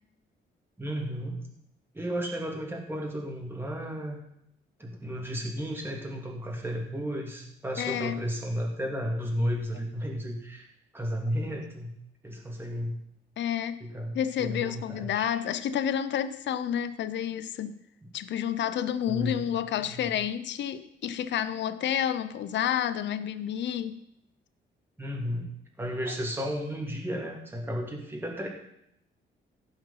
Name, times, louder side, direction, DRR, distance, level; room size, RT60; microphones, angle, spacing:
voice 1, 0.8-1.4 1.9-4.2 4.8-10.7 10.9-11.9 12.2-13.0 13.8-15.3 18.0-18.1 19.1-20.1 25.0-25.5 25.8-28.5, equal, 10° right, -1 dB, 2.7 m, -33 dB
voice 2, 7.8-8.2 13.4-13.8 14.1-17.8 18.1-24.0 26.1-26.2, left 9 dB, 65° left, 13 dB, 0.7 m, -30 dB
15.5 x 5.7 x 5.8 m, 0.75 s
cardioid pair, 90°, 20 cm